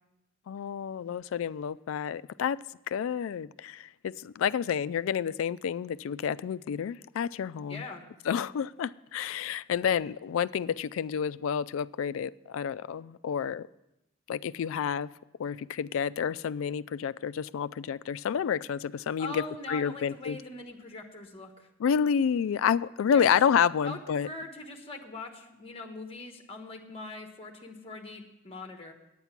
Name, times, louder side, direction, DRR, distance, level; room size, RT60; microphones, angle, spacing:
voice 1, 0.5-2.6 2.9-7.8 8.3-13.7 14.3-15.1 15.4-19.4 19.7-20.4 21.8-24.3, left 7 dB, 80° left, 0.3 m, -29 dB
voice 2, 7.7-8.1 19.2-21.7 23.1-23.4 23.8-28.9, left 2 dB, 30° left, 1.2 m, -42 dB
9.5 x 9.0 x 5.8 m
head